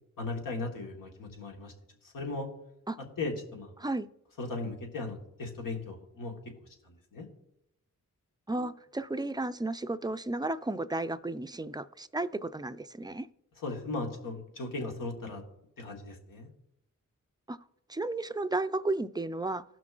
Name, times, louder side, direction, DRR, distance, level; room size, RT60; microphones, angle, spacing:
voice 1, 0.2-1.7 2.1-2.5 3.2-3.8 4.4-6.4 7.1-7.3 13.6-15.4 15.8-16.5, left 3 dB, 85° left, 1 dB, 1.4 m, -37 dB
voice 2, 8.5-13.3 17.5-17.6 17.9-19.6, right 2 dB, 15° right, 12 dB, 0.4 m, -33 dB
17.0 x 6.0 x 2.4 m, 0.84 s
cardioid pair, 50°, 32 cm